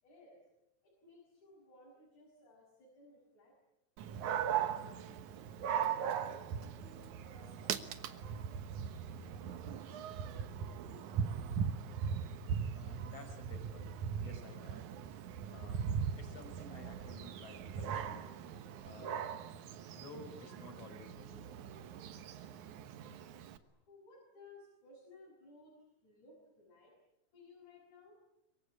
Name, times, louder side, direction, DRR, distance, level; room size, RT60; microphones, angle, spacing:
voice 1, 0.0-0.4 0.8-3.5 4.2-5.8 6.1-11.0 23.9-25.7 26.0-26.9 27.3-28.2, left 2 dB, 70° left, -3 dB, 7.7 m, -60 dB
Dog, 4.0-23.6, right 8 dB, 75° right, 2.6 m, -39 dB
voice 2, 12.7-13.9 14.2-14.8 15.5-15.9 16.2-18.2 18.8-19.3 19.9-21.5, left 2 dB, 50° left, 6 dB, 6.3 m, -53 dB
25.0 x 23.5 x 9.8 m, 0.87 s
omnidirectional pair, 3.6 m